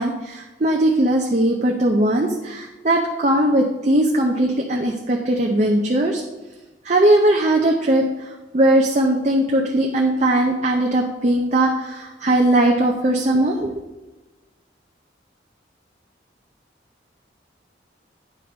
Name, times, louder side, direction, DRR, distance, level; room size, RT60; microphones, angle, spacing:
voice 1, 0.0-6.2 6.9-8.1 8.5-13.7, right 1 dB, 40° right, 1 dB, 0.6 m, -19 dB
9.4 x 5.1 x 3.9 m, 1.1 s
head